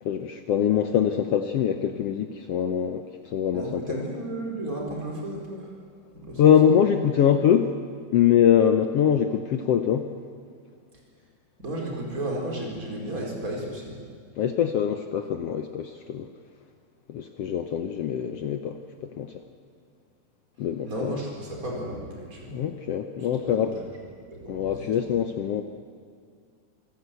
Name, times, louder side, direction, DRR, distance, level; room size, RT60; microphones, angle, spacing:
voice 1, 0.0-4.0 6.4-7.8 8.1-10.1 14.4-16.3 17.1-19.3 20.6-21.2 22.5-23.7 24.5-25.6, left 9 dB, 75° left, 7 dB, 1.4 m, -23 dB
voice 2, 3.5-5.8 6.1-6.4 11.6-14.0 20.8-22.6 23.2-23.7 24.3-25.1, right 1 dB, 25° right, -1 dB, 4.7 m, -34 dB
26.0 x 16.5 x 8.2 m, 2.1 s
omnidirectional pair, 3.8 m